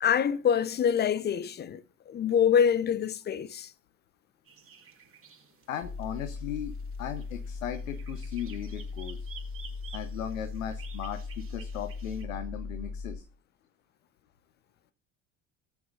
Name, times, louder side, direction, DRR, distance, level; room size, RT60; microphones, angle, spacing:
voice 1, 0.0-3.7, left 8 dB, 25° left, 0.6 m, -25 dB
sound 1, 4.5-12.2, right 7 dB, 35° right, 2.1 m, -53 dB
voice 2, 5.7-9.3 9.9-13.2, left 9 dB, 75° left, 0.9 m, -37 dB
sound 2, 5.8-13.2, left 4 dB, 10° left, 1.6 m, -38 dB
18.5 x 8.2 x 2.6 m
figure-of-eight pair, 65°, 40 cm